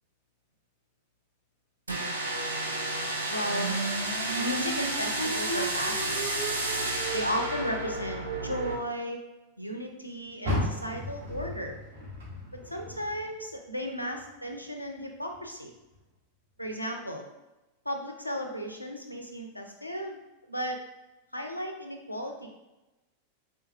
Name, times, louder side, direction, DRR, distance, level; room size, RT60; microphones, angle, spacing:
sound 1, 1.9-8.8, right 2 dB, 80° right, 0.5 m, -30 dB
voice 1, 3.3-3.8 4.4-6.6 7.1-9.2 9.6-11.8 12.5-15.7 16.6-17.3 17.9-20.2 20.5-20.8 21.3-22.5, equal, 90° left, 3 dB, 0.4 m, -35 dB
Car, 10.4-13.7 14.1-15.5 15.9-16.0 16.6-16.7, left 1 dB, 60° right, 1.1 m, -35 dB
3.4 x 2.8 x 2.3 m, 1.0 s
figure-of-eight pair, 90°, 0 cm